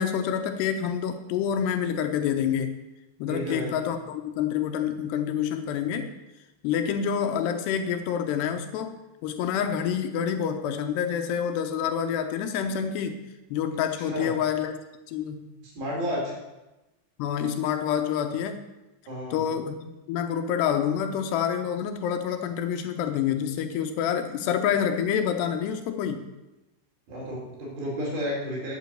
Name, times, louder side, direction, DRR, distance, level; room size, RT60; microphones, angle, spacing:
voice 1, 0.0-2.8 3.2-6.2 6.6-8.9 9.2-13.2 13.5-14.7 15.1-15.5 17.2-18.6 19.3-26.3, left 8 dB, 80° left, 7 dB, 2.9 m, -27 dB
voice 2, 3.3-3.7 14.0-14.3 15.6-16.3 19.1-19.4 27.1-28.7, equal, 60° right, -3 dB, 6.0 m, -32 dB
11.5 x 8.6 x 7.9 m, 1.0 s
omnidirectional pair, 5.0 m